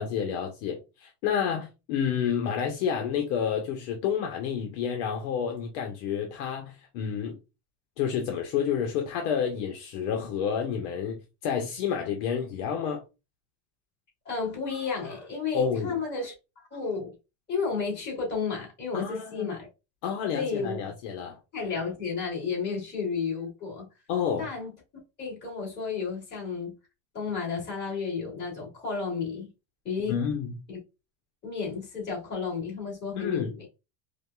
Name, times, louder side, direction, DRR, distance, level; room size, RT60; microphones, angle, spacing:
voice 1, 0.0-7.4 8.0-13.0 15.5-16.0 18.9-19.5 20.0-21.4 24.1-24.5 30.1-30.6 33.2-33.5, left 7 dB, 65° left, 0.9 m, -29 dB
voice 2, 14.3-16.3 16.7-17.1 17.5-19.7 20.3-20.8 21.5-23.9 24.4-24.7 25.2-26.7 27.1-29.5 29.8-30.3 30.7-30.8 31.4-33.7, left 5 dB, 20° left, 2.1 m, -32 dB
4.8 x 2.2 x 2.3 m
cardioid pair, 165°, 47 cm